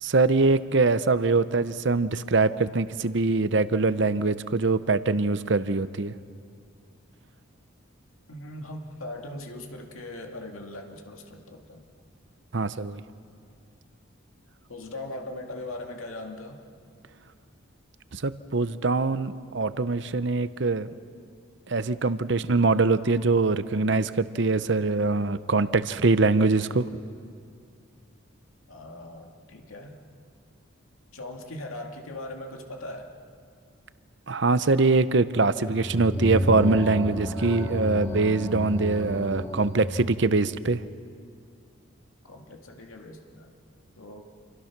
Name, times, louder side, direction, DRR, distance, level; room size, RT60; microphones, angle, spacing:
voice 1, 0.0-6.1 12.5-13.0 18.1-20.9 21.7-26.9 34.3-40.8, right 3 dB, 60° right, 14 dB, 0.7 m, -23 dB
voice 2, 8.3-11.8 14.7-16.6 28.7-30.0 31.1-33.1 42.2-43.5 44.0-44.3, left 1 dB, 85° left, 2 dB, 2.2 m, -40 dB
sound 1, 35.6-40.2, equal, 10° left, 1.9 m, -31 dB
28.5 x 24.5 x 6.0 m, 2.3 s
head